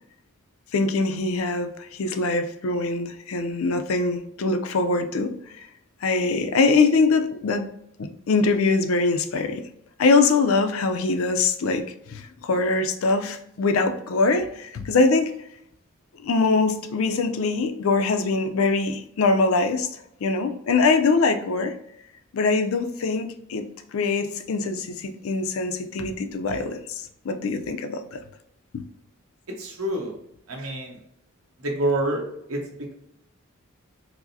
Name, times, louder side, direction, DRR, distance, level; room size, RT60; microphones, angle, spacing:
voice 1, 0.7-5.4 6.0-7.7 8.0-9.6 10.0-15.3 16.2-19.9 20.2-21.8 22.3-28.2 28.7-28.8, left 3 dB, 70° left, 7 dB, 0.4 m, -23 dB
voice 2, 29.6-30.1 30.5-31.0 31.6-32.2 32.5-32.6, right 1 dB, 75° right, 0 dB, 1.0 m, -26 dB
4.7 x 2.0 x 2.7 m, 0.76 s
head